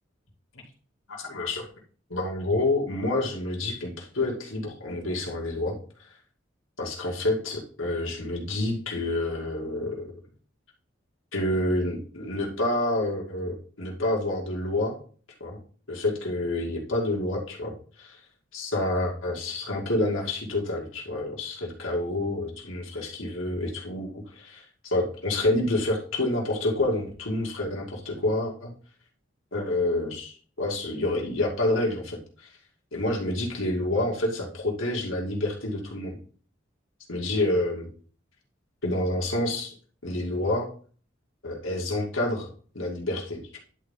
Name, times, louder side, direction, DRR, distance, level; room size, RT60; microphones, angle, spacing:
voice 1, 1.1-1.7 2.1-5.8 6.8-10.1 11.3-15.0 15.4-15.6 15.9-18.2 18.5-28.7 29.5-32.5 32.9-36.2 37.1-37.9 38.8-39.7 40.0-40.7 41.4-42.5 42.7-43.6, left 1 dB, 80° left, -1 dB, 2.4 m, -28 dB
11.0 x 4.2 x 3.7 m, 0.42 s
head